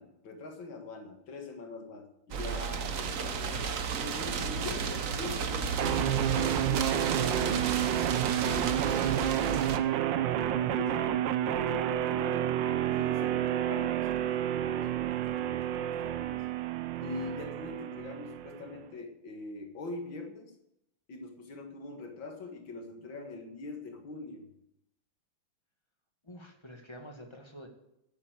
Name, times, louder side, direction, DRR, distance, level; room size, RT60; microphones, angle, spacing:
voice 1, 0.0-3.6 4.0-5.8 6.1-8.0 8.5-12.6 12.9-16.4 17.0-20.5 21.1-24.5, left 3 dB, 80° left, 3 dB, 2.6 m, -43 dB
sound 1, 2.3-9.8, right 5 dB, 50° right, 1.1 m, -33 dB
voice 2, 3.5-4.3 10.4-10.6 26.2-27.7, equal, 15° left, 2 dB, 2.0 m, -48 dB
sound 2, 5.8-18.8, right 11 dB, 75° right, 1.4 m, -30 dB
12.0 x 8.7 x 8.0 m, 0.82 s
omnidirectional pair, 2.1 m